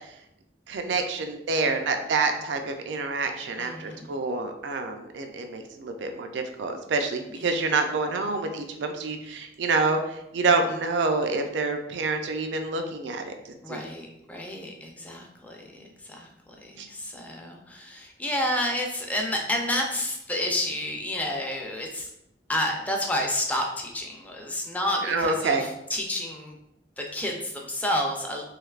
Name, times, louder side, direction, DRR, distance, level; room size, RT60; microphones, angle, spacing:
voice 1, 0.7-13.3 13.7-13.9 16.8-16.9 25.0-25.7, right 3 dB, 75° right, 5 dB, 0.4 m, -27 dB
voice 2, 3.6-4.2 7.3-7.6 13.6-16.3 16.6-22.1 22.5-26.5 27.0-28.4, left 1 dB, 10° left, 1 dB, 0.4 m, -30 dB
3.3 x 3.1 x 2.4 m, 0.83 s
head